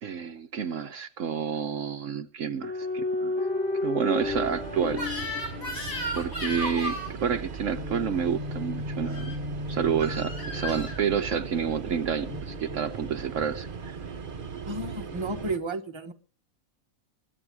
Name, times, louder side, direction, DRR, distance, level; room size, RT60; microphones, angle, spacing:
voice 1, 0.0-3.3 3.8-5.1 6.1-9.3 9.7-14.0, right 7 dB, 65° right, 1.2 m, -29 dB
sound 1, 2.6-6.3 7.7-11.5 12.3-13.5, left 2 dB, 65° left, 4.3 m, -33 dB
sound 2, 4.2-15.6, right 5 dB, 40° right, 1.1 m, -38 dB
Crying sobbing / Screech, 4.9-7.1 9.0-9.4 10.0-11.0, left 1 dB, 50° left, 6.2 m, -34 dB
voice 2, 14.7-16.1, right 2 dB, 20° right, 1.3 m, -32 dB
21.5 x 8.6 x 4.7 m
omnidirectional pair, 1.4 m